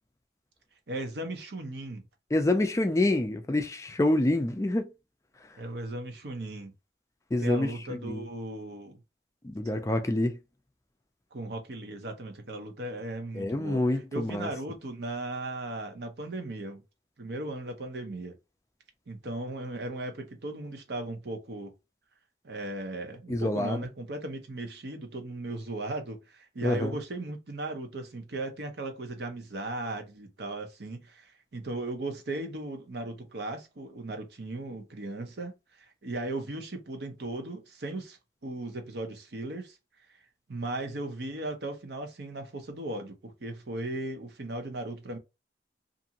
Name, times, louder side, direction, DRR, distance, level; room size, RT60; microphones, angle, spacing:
voice 1, 0.9-2.0 5.6-6.7 7.4-9.0 11.3-13.8 14.1-16.8 17.2-18.4 19.1-21.7 22.4-35.5 35.8-38.2 38.4-39.8 40.5-45.2, right 2 dB, 70° right, 0.8 m, -37 dB
voice 2, 2.3-4.9 7.3-8.3 9.4-10.4 13.3-14.5 23.3-23.8 26.6-26.9, left 1 dB, 15° left, 0.3 m, -27 dB
2.6 x 2.5 x 2.8 m
head